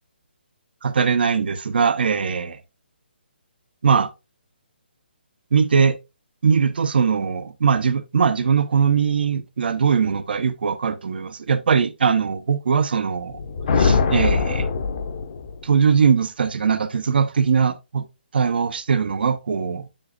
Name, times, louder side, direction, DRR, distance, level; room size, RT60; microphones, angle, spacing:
voice 1, 0.8-2.6 3.8-4.1 5.5-6.0 6.4-13.4 13.8-14.7 15.6-18.1 18.3-19.9, right 6 dB, 60° right, 0.9 m, -20 dB
sound 1, 13.2-15.7, left 4 dB, 45° left, 1.0 m, -22 dB
7.6 x 7.1 x 2.4 m
hypercardioid pair, 160°, 6 cm